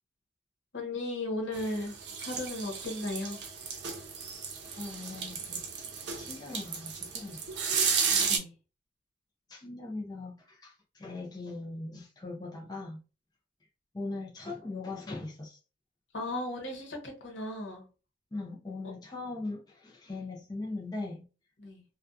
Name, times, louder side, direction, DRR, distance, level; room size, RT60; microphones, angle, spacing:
voice 1, 0.7-3.4 7.7-7.9 8.3-8.5 16.1-17.8 21.6-21.8, left 1 dB, 85° left, 0.9 m, -36 dB
sound 1, 1.5-8.4, right 6 dB, 70° right, 0.5 m, -33 dB
voice 2, 4.8-5.6 6.2-7.4 9.5-13.0 13.9-15.6 18.3-21.3, left 2 dB, 20° left, 0.4 m, -40 dB
2.6 x 2.2 x 2.3 m
head